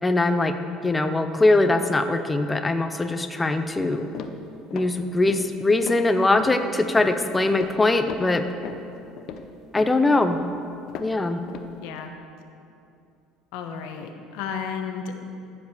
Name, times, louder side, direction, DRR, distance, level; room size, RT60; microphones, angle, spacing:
voice 1, 0.0-0.6 0.8-4.1 4.7-8.5 9.7-10.4 11.0-11.4, left 2 dB, 10° left, 7 dB, 0.5 m, -21 dB
sound 1, 3.7-3.8 4.1-4.9 5.3-5.5 5.8-6.1 6.4-6.7 7.0-7.2 7.5-7.8 8.1-11.2 11.5-11.7, left 7 dB, 50° left, 0.7 m, -38 dB
voice 2, 11.8-12.1 13.5-15.2, left 6 dB, 80° left, 5 dB, 1.1 m, -33 dB
14.5 x 5.3 x 6.4 m, 2.6 s
cardioid pair, 150°, 0 cm